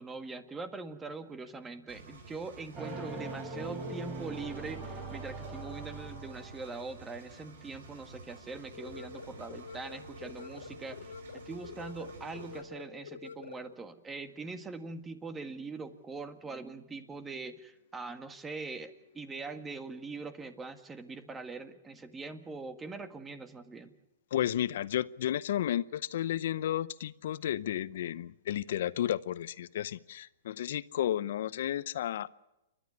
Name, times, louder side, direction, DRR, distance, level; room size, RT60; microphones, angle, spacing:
voice 1, 0.0-23.9, right 3 dB, 15° right, 9 dB, 1.8 m, -42 dB
Engine, 1.9-12.6, right 3 dB, 70° right, 4.6 m, -51 dB
sound 1, 2.7-6.9, right 2 dB, 30° right, 6.0 m, -41 dB
sound 2, 8.7-13.7, left 5 dB, 85° left, 1.4 m, -47 dB
voice 2, 24.3-32.3, left 11 dB, 65° left, 17 dB, 0.7 m, -32 dB
29.5 x 12.5 x 9.5 m, 0.96 s
hypercardioid pair, 130°, 0 cm